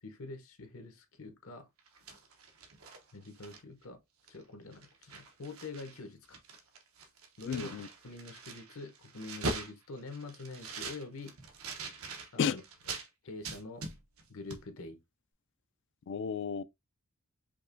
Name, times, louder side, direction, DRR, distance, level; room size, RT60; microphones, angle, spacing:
voice 1, 0.0-1.7 3.1-4.0 4.3-6.4 7.4-7.7 8.0-11.3 12.3-12.6 13.2-13.8 14.3-15.0, left 3 dB, 75° left, 1.0 m, -45 dB
sound 1, 1.8-3.9 4.3-4.4 4.7-6.0 6.2-13.1 13.4-14.3 14.5-14.6, right 3 dB, 90° right, 0.9 m, -42 dB
voice 2, 7.5-7.9 12.4-12.6 16.1-16.6, left 7 dB, 60° left, 0.3 m, -32 dB
5.1 x 2.9 x 2.6 m
head